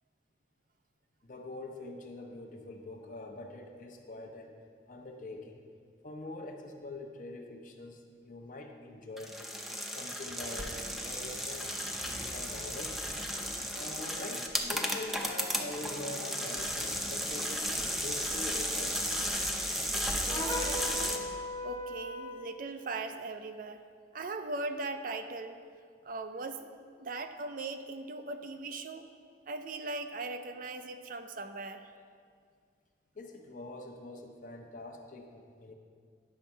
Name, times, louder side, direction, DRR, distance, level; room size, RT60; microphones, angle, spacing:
voice 1, 1.2-4.6 4.9-5.6 6.0-11.7 12.0-13.0 13.7-19.0 33.1-35.7, left 2 dB, 45° left, 3 dB, 0.8 m, -44 dB
sound 1, 9.2-21.2, equal, ahead, 0.6 m, -34 dB
sound 2, 20.3-22.5, left 1 dB, 20° left, 1.0 m, -37 dB
voice 2, 20.3-21.3 21.6-23.8 24.1-25.6 26.0-26.7 27.0-29.1 29.5-31.9, right 3 dB, 50° right, 8 dB, 0.5 m, -39 dB
10.0 x 6.3 x 4.5 m, 2.1 s
head